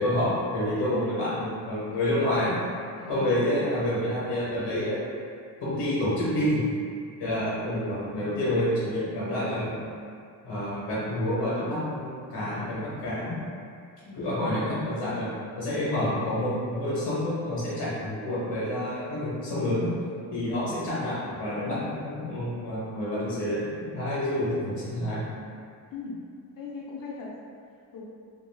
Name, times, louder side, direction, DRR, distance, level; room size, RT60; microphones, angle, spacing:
voice 1, 0.0-2.6 3.1-5.0 5.6-6.7 7.2-9.8 10.4-13.4 14.2-15.3 15.6-19.9 20.3-25.2, left 1 dB, 90° left, -9 dB, 0.8 m, -28 dB
voice 2, 3.0-3.4 7.3-7.6 14.1-14.6 20.5-20.7 25.9-26.2 26.6-27.3 27.9-28.0, left 3 dB, 55° left, -4 dB, 0.6 m, -39 dB
2.3 x 2.2 x 3.2 m, 2.3 s
wide cardioid pair, 135°, 41 cm